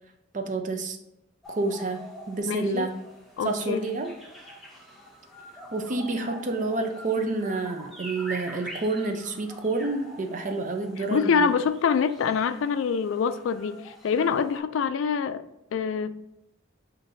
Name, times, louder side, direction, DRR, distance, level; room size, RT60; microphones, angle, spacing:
voice 1, 0.3-1.0 1.5-2.0 2.3-2.9 3.4-4.1 5.7-11.5, right 3 dB, 40° right, 6 dB, 0.5 m, -29 dB
sound 1, 1.4-14.6, equal, ahead, 0.8 m, -45 dB
voice 2, 2.5-2.9 3.4-3.8 11.0-15.4 15.7-16.1, left 6 dB, 85° left, 12 dB, 0.3 m, -25 dB
7.3 x 2.6 x 2.6 m, 0.87 s
head